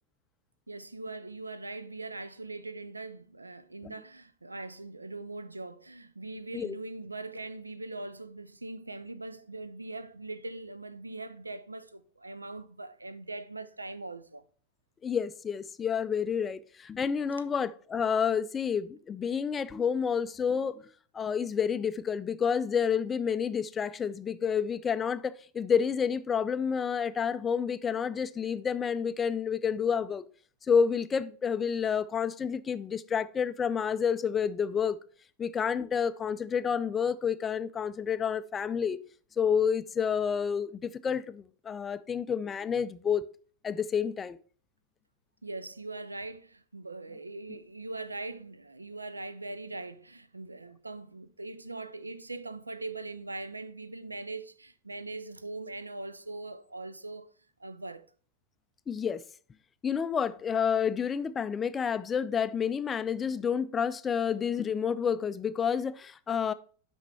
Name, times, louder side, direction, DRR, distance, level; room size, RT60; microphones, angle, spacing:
voice 1, 0.7-14.4 45.4-57.3 57.6-58.1, right 2 dB, 80° right, 0.4 m, -41 dB
voice 2, 15.0-20.9 21.1-30.2 30.6-35.0 35.4-39.0 39.4-43.2 43.6-44.4 58.9-59.2 59.8-66.5, left 7 dB, 20° left, 0.3 m, -29 dB
5.9 x 5.3 x 4.5 m
figure-of-eight pair, 90°, 0 cm